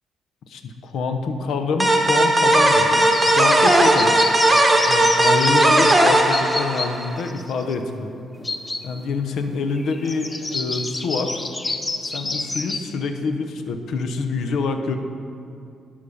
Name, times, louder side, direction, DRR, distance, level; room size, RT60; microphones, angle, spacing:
voice 1, 0.5-3.1 3.3-4.2 4.9-8.1 8.8-11.4 12.0-15.0, left 4 dB, 70° left, 6 dB, 0.7 m, -26 dB
sound 1, 1.8-7.2, right 1 dB, 15° right, 1.0 m, -17 dB
sound 2, 3.0-6.9 7.2-7.7 8.4-9.0 9.4-9.5 9.8-12.8, left 2 dB, 25° left, 0.6 m, -28 dB
11.5 x 5.6 x 5.0 m, 2.5 s
cardioid pair, 90°, 0 cm